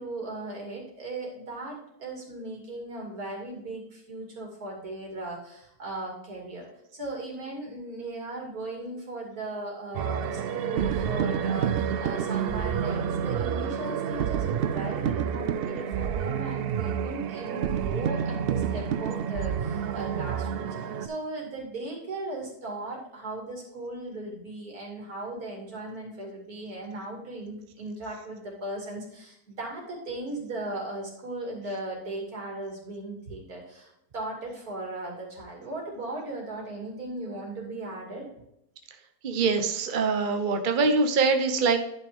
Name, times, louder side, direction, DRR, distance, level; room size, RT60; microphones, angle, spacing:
voice 1, 0.0-6.7 6.9-20.7 21.0-38.3, right 2 dB, 65° right, -2 dB, 3.1 m, -37 dB
sound 1, 9.9-21.1, right 8 dB, 90° right, 0.5 m, -29 dB
voice 2, 39.2-41.8, right 4 dB, 40° right, 6 dB, 0.8 m, -24 dB
10.5 x 5.9 x 3.5 m, 0.79 s
omnidirectional pair, 1.7 m